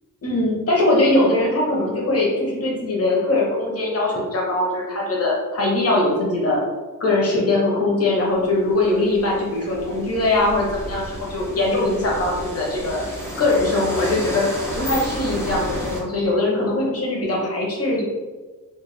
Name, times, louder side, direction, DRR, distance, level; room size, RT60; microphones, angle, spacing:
voice 1, 0.2-6.6 7.0-13.0 13.4-18.0, left 2 dB, 45° left, -3 dB, 1.0 m, -21 dB
sound 1, 8.3-16.0, equal, 10° left, 0.7 m, -32 dB
4.4 x 2.3 x 3.3 m, 1.3 s
wide cardioid pair, 165°, 35 cm